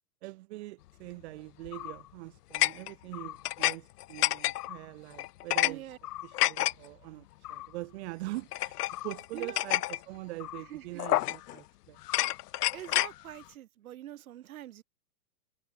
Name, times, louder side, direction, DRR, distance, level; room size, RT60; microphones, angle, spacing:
voice 1, 0.2-5.8 6.2-8.8 9.0-12.0, right 20 dB, 45° right, 4.2 m, -43 dB
sound 1, 1.7-2.0 2.5-3.8 4.0-4.8 5.2-5.7 6.0-6.7 7.4-7.7 8.5-10.0 10.4-10.6 11.0-11.6 12.0-13.1, left 16 dB, 85° left, 0.6 m, -29 dB
voice 2, 5.6-6.0 9.3-9.6 10.7-11.0 12.7-14.8, right 12 dB, 65° right, 5.4 m, -44 dB
hypercardioid pair, 160°, 46 cm